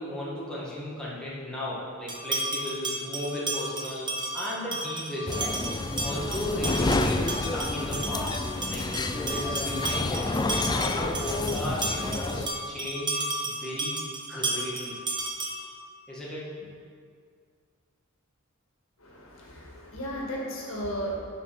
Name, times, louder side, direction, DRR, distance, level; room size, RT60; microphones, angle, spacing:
voice 1, 0.0-5.4 6.0-8.4 8.7-8.9 9.2-10.3 10.7-14.0 14.3-15.0 16.1-16.6, left 1 dB, 5° left, -8 dB, 1.8 m, -35 dB
sound 1, 2.1-15.8, right 2 dB, 20° right, 1.0 m, -33 dB
sound 2, 5.3-12.5, left 2 dB, 20° left, 0.4 m, -29 dB
voice 2, 19.0-21.2, equal, 65° left, -3 dB, 2.0 m, -35 dB
9.4 x 5.8 x 5.9 m, 2.1 s
head